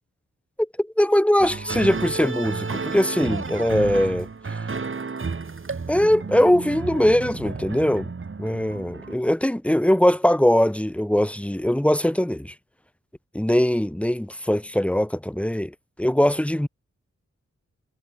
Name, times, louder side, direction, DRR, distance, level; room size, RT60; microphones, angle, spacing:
voice 1, 0.8-4.3 5.9-8.1 8.4-12.5 13.3-16.7, left 1 dB, 5° left, 1.5 m, -21 dB
sound 1, 1.4-9.2, right 4 dB, 45° right, 2.3 m, -31 dB
wide cardioid pair, 80°, 29 cm